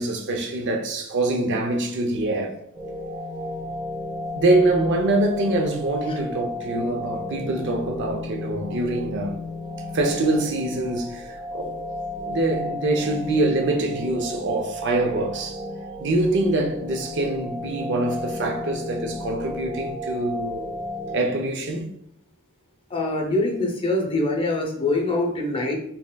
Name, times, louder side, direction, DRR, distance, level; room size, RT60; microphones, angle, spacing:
voice 1, 0.0-2.6 4.3-9.4 9.9-11.7 12.3-15.6 16.0-20.7 21.1-21.9, right 2 dB, 55° right, 0.5 m, -24 dB
sound 1, 2.7-21.2, left 1 dB, 20° right, 1.1 m, -33 dB
voice 2, 22.9-25.8, left 2 dB, 25° left, 0.6 m, -24 dB
4.2 x 3.4 x 2.2 m
head